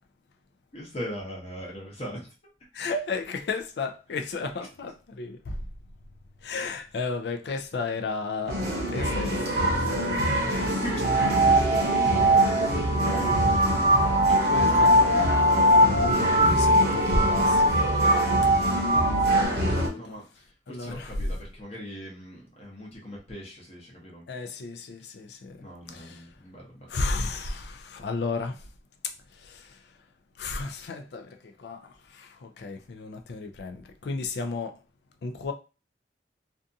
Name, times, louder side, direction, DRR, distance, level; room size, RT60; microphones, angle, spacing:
voice 1, 0.7-2.3 2.8-2.9 10.6-11.0 11.5-12.1 12.7-13.7 18.1-18.4 18.7-19.5 19.9-24.2 25.6-26.9, equal, 35° left, 0.8 m, -40 dB
voice 2, 2.7-5.6 6.4-8.6 8.9-10.2 14.4-17.7 18.6-19.0 19.6-20.2 20.7-21.3 24.3-26.3 26.9-28.7 29.0-30.0 30.4-34.8 35.2-35.5, left 3 dB, 70° left, 0.4 m, -34 dB
sound 1, 8.5-19.9, equal, 60° right, 0.7 m, -27 dB
sound 2, 11.0-19.5, right 1 dB, 30° right, 0.5 m, -21 dB
2.6 x 2.3 x 2.6 m
head